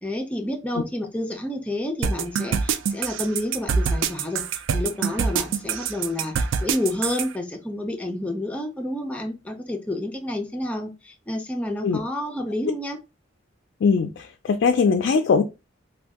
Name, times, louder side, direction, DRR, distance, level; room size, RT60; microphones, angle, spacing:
voice 1, 0.0-4.4 4.7-13.0, left 1 dB, 5° left, 0.6 m, -29 dB
sound 1, 2.0-7.3, right 6 dB, 75° right, 0.3 m, -24 dB
voice 2, 13.8-15.4, left 5 dB, 65° left, 0.3 m, -20 dB
2.6 x 2.3 x 3.5 m
head